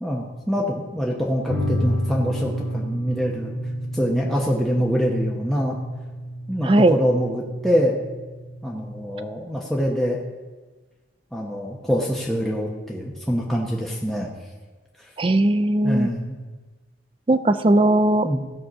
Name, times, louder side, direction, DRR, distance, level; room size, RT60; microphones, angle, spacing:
voice 1, 0.0-3.5 3.9-5.8 6.5-8.0 8.6-10.2 11.3-14.3 15.8-16.4 18.2-18.4, equal, ahead, -3 dB, 1.0 m, -24 dB
sound 1, 1.5-9.1, equal, 65° right, 1.8 m, -30 dB
voice 2, 6.6-7.0 15.2-16.1 17.3-18.3, right 1 dB, 30° right, 9 dB, 0.4 m, -18 dB
15.5 x 5.7 x 6.5 m, 1.3 s
head